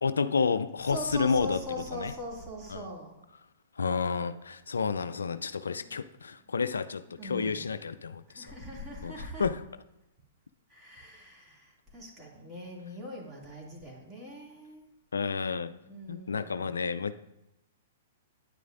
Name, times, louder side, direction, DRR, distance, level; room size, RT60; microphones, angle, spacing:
voice 1, 0.0-1.6 1.9-2.1 2.7-2.9 3.8-8.5 9.0-9.6 15.1-15.7 16.1-17.2, left 5 dB, 75° left, 12 dB, 0.3 m, -30 dB
voice 2, 0.9-3.1 5.7-5.9 7.1-7.7 8.3-9.4 10.7-14.8 15.8-16.7, equal, 15° right, -3 dB, 2.5 m, -41 dB
9.6 x 9.3 x 2.6 m, 0.92 s
figure-of-eight pair, 110°, 0 cm